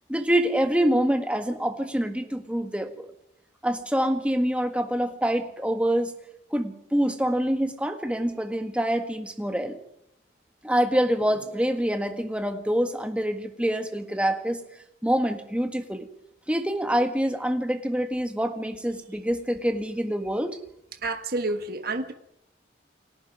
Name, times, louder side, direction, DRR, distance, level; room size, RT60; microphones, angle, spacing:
voice 1, 0.1-3.1 3.6-6.1 6.5-9.8 10.6-14.6 15.0-16.1 16.5-20.6, equal, 5° right, 6 dB, 1.6 m, -26 dB
voice 2, 20.9-22.1, right 2 dB, 50° right, 6 dB, 1.6 m, -29 dB
29.5 x 20.0 x 4.9 m, 0.77 s
head